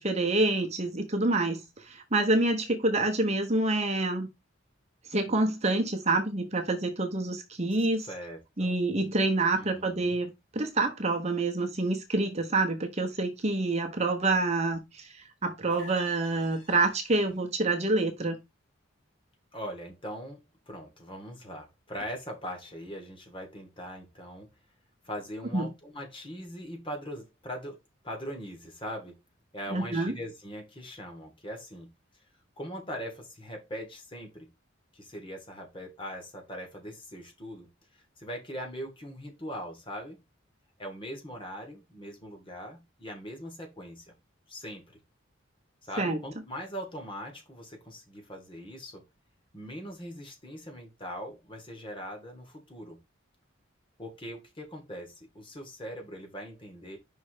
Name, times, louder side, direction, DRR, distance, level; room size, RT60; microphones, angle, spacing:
voice 1, 0.0-4.3 5.1-8.1 8.6-18.4 25.5-25.7 29.7-30.1 46.0-46.2, right 2 dB, 35° right, 0.9 m, -27 dB
voice 2, 7.8-8.8 9.5-10.2 19.5-20.4 20.7-24.5 25.0-27.8 28.0-29.1 29.5-31.9 32.6-34.5 34.9-37.7 38.2-40.2 40.8-44.1 44.5-44.9 45.8-49.0 49.5-53.0 54.0-57.0, equal, 25° left, 1.7 m, -41 dB
sound 1, 15.7-17.3, left 1 dB, 75° left, 1.9 m, -49 dB
5.5 x 3.5 x 4.9 m
head